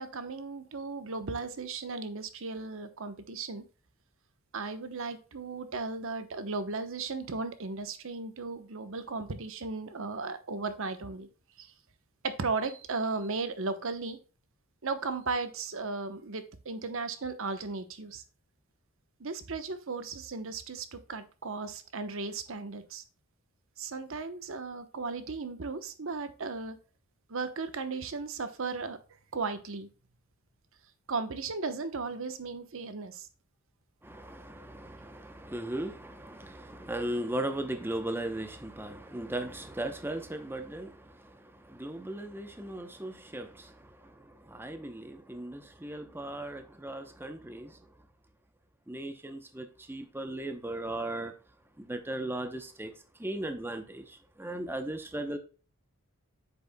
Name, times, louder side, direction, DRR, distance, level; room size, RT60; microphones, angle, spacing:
voice 1, 0.0-3.7 4.5-11.3 11.6-11.7 12.2-14.2 14.8-18.2 19.2-23.0 23.8-26.8 27.3-29.0 29.3-29.9 31.1-33.3, right 4 dB, 65° right, 0.9 m, -36 dB
voice 2, 34.0-47.8 48.9-51.3 51.8-52.9 53.2-55.4, right 1 dB, 10° right, 0.7 m, -37 dB
8.3 x 6.7 x 2.2 m
head